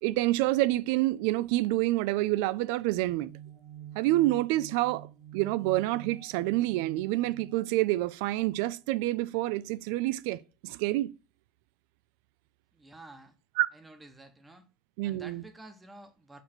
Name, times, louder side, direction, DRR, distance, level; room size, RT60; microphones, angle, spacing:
voice 1, 0.0-3.3 4.0-5.1 5.3-11.1 13.6-13.7 15.0-15.4, right 17 dB, 75° right, 0.3 m, -27 dB
sound 1, 3.1-8.6, right 11 dB, 50° right, 0.8 m, -47 dB
voice 2, 12.7-13.4 13.7-14.7 15.0-16.4, right 2 dB, 10° right, 0.9 m, -50 dB
6.5 x 3.2 x 5.9 m
cardioid pair, 165°, 0 cm